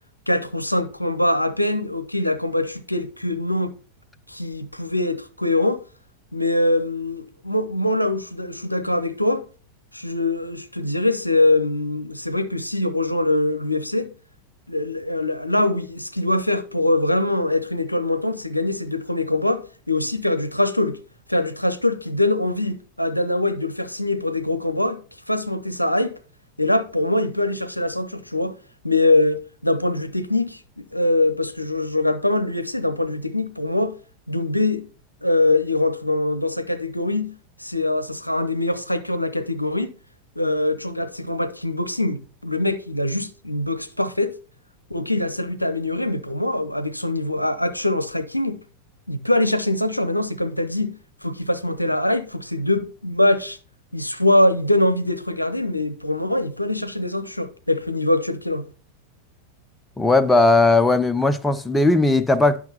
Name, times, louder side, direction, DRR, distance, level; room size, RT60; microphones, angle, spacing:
voice 1, 0.3-3.7 4.3-5.8 6.3-9.4 9.9-14.1 14.7-21.0 21.3-25.0 25.3-26.1 26.6-28.5 28.8-34.0 34.3-34.9 35.2-37.3 37.6-39.9 40.4-44.4 44.9-48.6 49.1-53.6 53.9-58.6, left 1 dB, 85° left, 0.6 m, -23 dB
voice 2, 60.0-62.6, left 2 dB, 10° left, 0.5 m, -17 dB
10.5 x 5.8 x 2.8 m
figure-of-eight pair, 90°, 0 cm